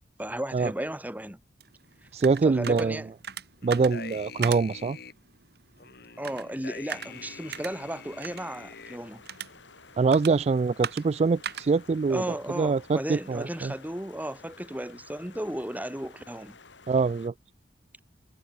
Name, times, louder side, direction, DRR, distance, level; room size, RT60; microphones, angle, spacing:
voice 1, 0.2-1.4 2.4-3.1 6.2-9.2 12.1-16.6, right 1 dB, 10° right, 2.6 m, -35 dB
sound 1, 1.6-13.3, right 7 dB, 60° right, 3.8 m, -42 dB
voice 2, 2.1-3.0 3.6-5.0 10.0-13.7 16.9-17.3, right 4 dB, 35° right, 0.3 m, -24 dB
sound 2, 3.6-5.1 5.8-9.0, left 5 dB, 60° left, 4.1 m, -45 dB
sound 3, 7.1-17.3, left 4 dB, 80° left, 3.8 m, -53 dB
head